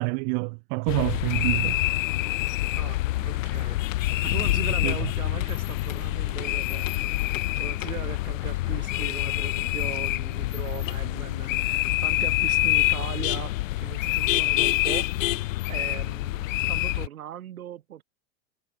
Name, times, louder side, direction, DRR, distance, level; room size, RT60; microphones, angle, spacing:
voice 1, 0.0-1.8 4.8-5.1, right 37 dB, 50° right, 1.5 m, -27 dB
sound 1, 0.9-17.1, left 17 dB, 65° left, 1.3 m, -26 dB
voice 2, 2.7-3.8 4.2-7.1 7.5-15.1 15.7-18.0, right 11 dB, 75° right, 3.1 m, -39 dB
hypercardioid pair, 105°, 43 cm